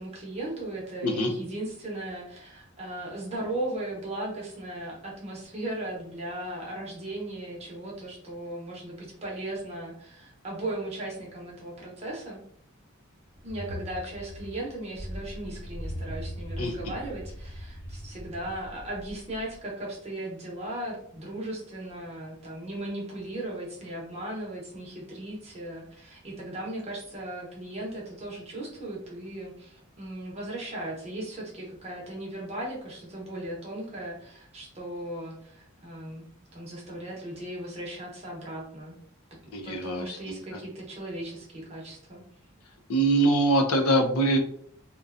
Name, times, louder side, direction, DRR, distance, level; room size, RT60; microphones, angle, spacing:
voice 1, 0.0-12.4 13.4-39.0 39.6-42.2, right 1 dB, 30° right, -3 dB, 0.7 m, -37 dB
sound 1, 13.3-19.6, equal, 60° left, 0.9 m, -40 dB
voice 2, 39.5-40.4 42.9-44.4, right 2 dB, 85° left, 3 dB, 0.5 m, -23 dB
2.5 x 2.2 x 2.3 m, 0.66 s
head